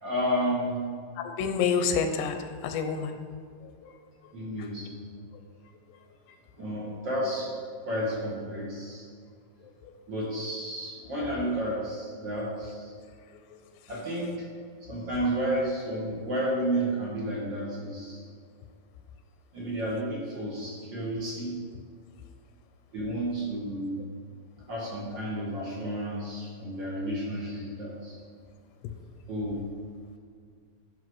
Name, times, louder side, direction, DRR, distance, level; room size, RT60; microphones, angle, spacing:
voice 1, 0.0-0.8 4.3-5.3 6.6-7.5 7.8-9.1 10.1-12.9 13.9-14.3 14.8-18.2 19.5-21.6 22.9-24.0 24.7-28.2 29.3-29.6, right 1 dB, 50° right, -5 dB, 1.4 m, -31 dB
voice 2, 1.2-3.2, left 6 dB, 85° left, 7 dB, 2.8 m, -28 dB
11.5 x 5.7 x 4.7 m, 2.1 s
omnidirectional pair, 4.8 m